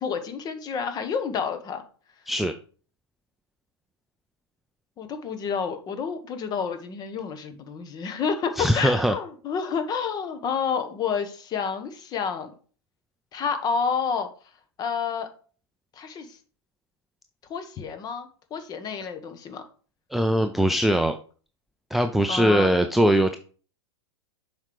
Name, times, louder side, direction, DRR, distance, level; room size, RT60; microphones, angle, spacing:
voice 1, 0.0-1.8 5.0-12.5 13.3-14.3 14.8-15.3 15.9-16.4 17.5-19.6 22.3-22.7, left 6 dB, 25° left, 8 dB, 1.3 m, -29 dB
voice 2, 8.6-9.1 20.1-21.2 21.9-23.4, equal, ahead, 7 dB, 0.5 m, -21 dB
7.2 x 5.2 x 4.8 m, 0.41 s
figure-of-eight pair, 100°, 14 cm